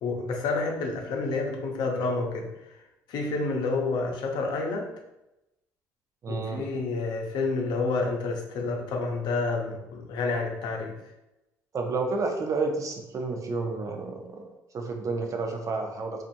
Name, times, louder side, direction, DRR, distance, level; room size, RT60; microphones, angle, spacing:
voice 1, 0.0-2.8 3.1-4.9 6.3-11.0, left 3 dB, 70° left, 1 dB, 0.6 m, -29 dB
voice 2, 6.2-6.6 11.7-14.4 14.7-16.2, right 3 dB, 45° right, 3 dB, 0.6 m, -30 dB
2.6 x 2.4 x 2.6 m, 0.93 s
hypercardioid pair, 60°, 8 cm